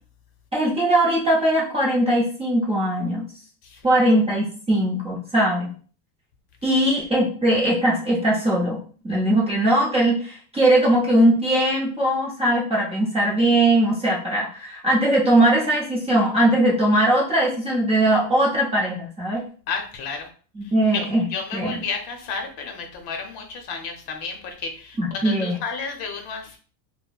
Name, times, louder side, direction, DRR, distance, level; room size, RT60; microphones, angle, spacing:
voice 1, 0.5-3.3 3.8-5.7 6.6-19.4 20.6-21.8 25.0-25.6, right 1 dB, 10° right, -5 dB, 0.6 m, -20 dB
voice 2, 19.7-20.3 20.6-26.6, left 5 dB, 50° left, 4 dB, 0.7 m, -32 dB
4.2 x 2.1 x 2.3 m, 0.42 s
cardioid pair, 145°, 49 cm